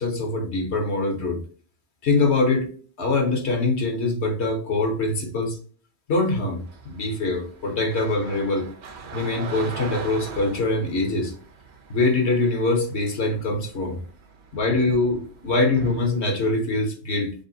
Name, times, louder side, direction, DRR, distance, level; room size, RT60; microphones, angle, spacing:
voice 1, 0.0-1.4 2.0-2.7 3.0-5.6 6.1-8.7 9.1-11.3 11.9-14.0 14.5-17.3, left 2 dB, 70° left, 3 dB, 1.3 m, -23 dB
sound 1, 6.4-16.2, right 5 dB, 70° right, 1.1 m, -41 dB
6.7 x 2.4 x 2.7 m, 0.43 s
omnidirectional pair, 1.2 m